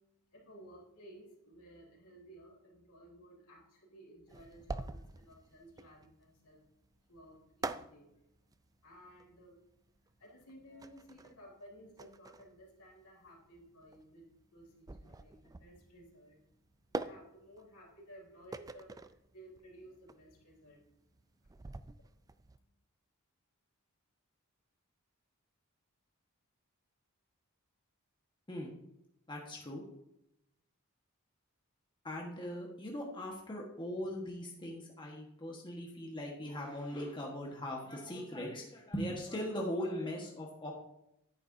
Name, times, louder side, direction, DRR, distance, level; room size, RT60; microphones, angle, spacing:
voice 1, 0.0-22.7, equal, 75° left, -2 dB, 3.5 m, -57 dB
sound 1, 4.3-22.6, right 3 dB, 15° right, 0.3 m, -46 dB
voice 2, 29.3-29.8 32.0-40.7, left 1 dB, 20° left, -2 dB, 1.3 m, -40 dB
10.5 x 9.6 x 2.7 m, 0.81 s
head